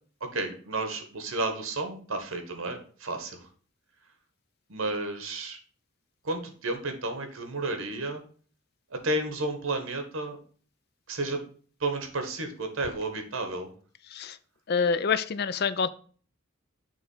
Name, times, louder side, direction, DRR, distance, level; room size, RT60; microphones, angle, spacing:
voice 1, 0.2-3.4 4.7-5.6 6.2-8.2 8.9-10.4 11.1-11.4 11.8-13.7, right 2 dB, 85° right, 6 dB, 1.4 m, -32 dB
voice 2, 14.7-15.9, left 5 dB, 50° left, 14 dB, 0.4 m, -26 dB
7.1 x 3.2 x 5.5 m, 0.43 s
head